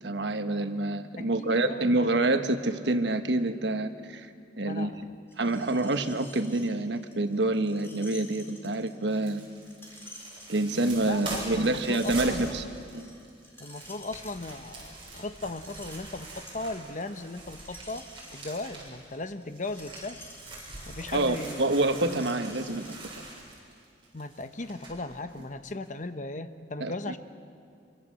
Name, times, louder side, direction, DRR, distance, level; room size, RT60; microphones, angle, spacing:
voice 1, 0.0-4.3 4.6-4.9 5.4-9.4 10.5-12.6 12.9-13.0 21.1-23.0 26.8-27.1, right 2 dB, 80° right, 8 dB, 1.3 m, -27 dB
voice 2, 1.2-2.1 4.6-5.2 11.0-12.6 13.6-18.1 18.3-20.2 20.8-21.7 24.1-27.2, left 2 dB, 45° left, 10 dB, 1.0 m, -37 dB
Screech, 5.3-23.0, left 1 dB, 15° left, 4.2 m, -51 dB
sound 1, 9.1-19.0 19.4-25.4 25.8-25.9, right 2 dB, 30° right, 7.4 m, -43 dB
26.0 x 24.5 x 7.6 m, 2.3 s
head